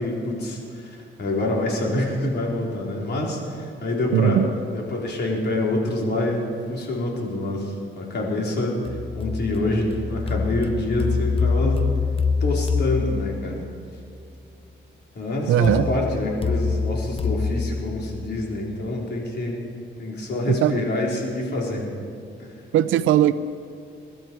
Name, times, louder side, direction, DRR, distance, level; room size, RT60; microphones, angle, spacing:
voice 1, 0.0-4.4 4.7-8.8 9.1-11.8 12.4-13.7 15.2-19.6 20.0-22.1 22.4-22.5, left 1 dB, 55° left, -2 dB, 4.0 m, -26 dB
voice 2, 4.1-4.5 15.5-15.8 20.5-20.8 22.7-23.3, right 11 dB, 85° right, 14 dB, 0.7 m, -18 dB
sound 1, 8.9-13.8 15.6-18.6, left 5 dB, 30° left, 0.7 m, -26 dB
22.0 x 12.5 x 4.6 m, 2.6 s
cardioid pair, 90°, 20 cm